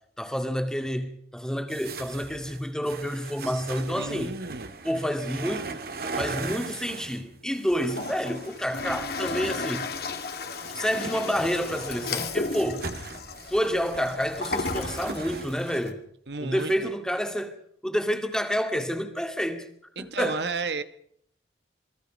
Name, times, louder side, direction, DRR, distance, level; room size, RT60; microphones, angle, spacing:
voice 1, 0.2-4.3 4.8-5.7 6.1-9.9 10.7-12.9 13.5-16.0 16.4-17.6 17.8-19.7 20.0-20.4, equal, 5° left, 2.2 m, -29 dB
sound 1, 1.7-9.2 10.1-15.8, right 3 dB, 55° right, 2.2 m, -39 dB
voice 2, 4.0-4.7 16.3-16.9 20.0-20.8, right 4 dB, 70° right, 1.3 m, -33 dB
Toilet flush, 7.7-15.9, left 3 dB, 60° left, 2.4 m, -34 dB
28.0 x 20.5 x 5.2 m
head